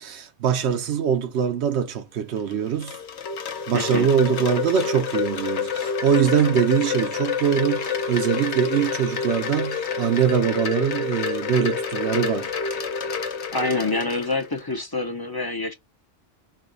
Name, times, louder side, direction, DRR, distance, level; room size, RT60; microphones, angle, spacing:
voice 1, 0.0-3.0 3.7-12.5, right 8 dB, 85° right, 1.0 m, -23 dB
Wind chime, 2.4-14.6, left 5 dB, 85° left, 1.1 m, -28 dB
voice 2, 3.7-4.1 13.5-15.7, left 3 dB, 25° left, 0.6 m, -26 dB
6.2 x 2.2 x 3.8 m
omnidirectional pair, 1.1 m